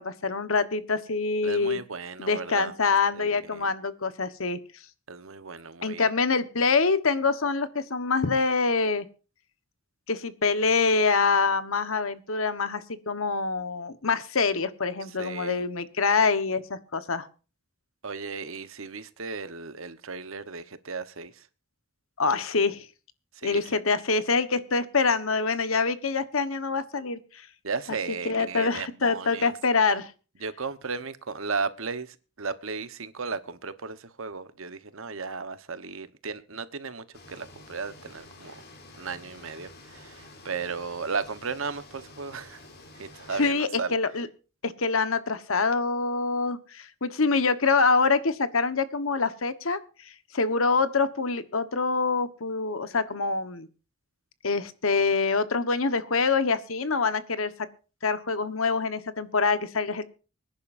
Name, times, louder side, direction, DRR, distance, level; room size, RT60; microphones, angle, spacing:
voice 1, 0.0-1.8 2.2-4.6 5.8-9.0 10.1-17.3 22.2-22.8 23.4-27.2 28.1-30.1 43.3-44.3 44.6-49.8 50.3-53.7 54.4-57.5 58.0-60.1, left 4 dB, 85° left, 1.3 m, -25 dB
voice 2, 1.4-2.7 3.1-3.7 5.1-6.1 15.2-15.6 18.0-21.3 23.4-23.6 27.6-29.5 30.4-38.6 39.0-42.6 43.0-43.9, right 4 dB, 80° right, 1.2 m, -35 dB
sound 1, 37.1-43.5, left 2 dB, 50° left, 3.6 m, -49 dB
24.5 x 10.5 x 2.6 m
head